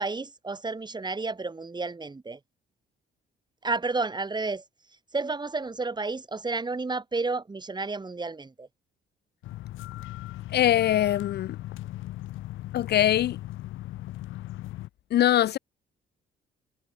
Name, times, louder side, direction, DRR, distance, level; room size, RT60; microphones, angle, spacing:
voice 1, 0.0-2.4 3.6-4.6 5.1-8.7, right 3 dB, 20° right, 2.1 m, -31 dB
sound 1, 9.4-14.9, left 15 dB, 85° left, 1.0 m, -38 dB
voice 2, 10.5-11.6 12.7-13.4 15.1-15.6, left 12 dB, 55° left, 0.4 m, -22 dB
cardioid pair, 90°, 20 cm